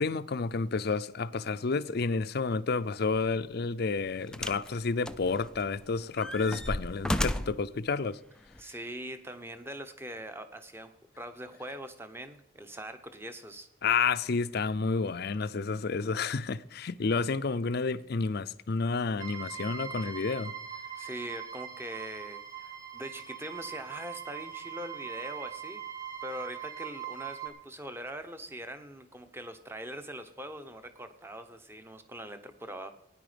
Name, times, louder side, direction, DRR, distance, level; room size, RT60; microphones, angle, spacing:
voice 1, 0.0-8.2 13.8-20.5, left 4 dB, 55° left, 0.5 m, -30 dB
sound 1, 3.1-3.3 4.3-4.7 5.0-5.8 6.2-7.6 8.5-8.6, left 1 dB, 5° left, 0.4 m, -33 dB
voice 2, 8.6-13.7 21.0-25.8 26.2-32.9, right 1 dB, 10° right, 0.9 m, -42 dB
sound 2, 19.2-27.5, right 9 dB, 45° right, 2.0 m, -41 dB
17.0 x 10.0 x 5.1 m
head